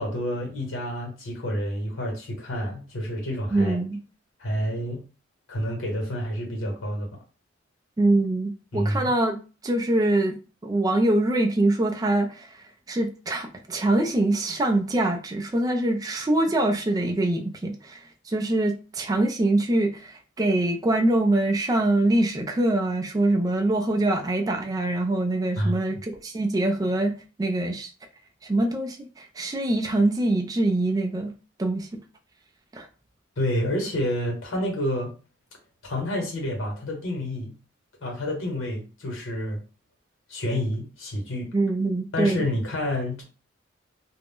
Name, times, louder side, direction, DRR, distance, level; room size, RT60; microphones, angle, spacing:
voice 1, 0.0-3.8 4.4-5.0 5.5-7.1 8.7-9.1 25.6-26.0 33.4-35.1 35.8-37.5 38.0-39.6 40.3-41.5 42.1-43.2, equal, 85° left, 0 dB, 1.2 m, -29 dB
voice 2, 3.5-4.0 8.0-9.4 9.6-10.4 10.6-12.6 12.9-18.0 18.3-27.9 28.4-31.3 31.6-31.9 32.7-32.9 41.5-42.4, right 2 dB, 20° right, 4 dB, 0.3 m, -24 dB
2.5 x 2.0 x 3.5 m, 0.34 s
head